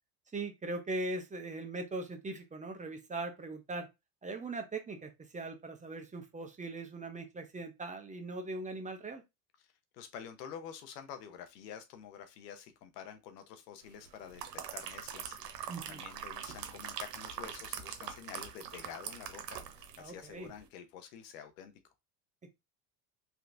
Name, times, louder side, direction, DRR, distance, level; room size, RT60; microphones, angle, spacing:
voice 1, 0.3-3.9 4.2-9.2 15.7-16.0 20.0-20.5, right 2 dB, 15° right, 0.7 m, -40 dB
voice 2, 9.9-19.6 20.0-21.7, left 8 dB, 80° left, 0.9 m, -48 dB
sound 1, 14.1-20.1 20.4-20.6, right 9 dB, 90° right, 0.8 m, -43 dB
3.3 x 2.9 x 2.5 m
hypercardioid pair, 90°, 47 cm